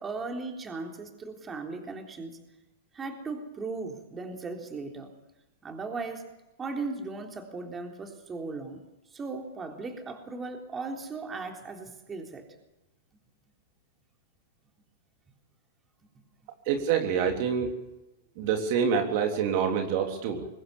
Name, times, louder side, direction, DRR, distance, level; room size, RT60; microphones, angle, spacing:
voice 1, 0.0-2.4 2.9-5.1 5.6-6.3 6.6-8.8 9.1-12.4 16.1-16.2, right 3 dB, 20° right, 3 dB, 3.7 m, -37 dB
voice 2, 16.7-17.8 18.4-20.5, right 7 dB, 50° right, 4 dB, 3.3 m, -26 dB
23.5 x 19.5 x 7.2 m, 0.99 s
hypercardioid pair, 115°, 0 cm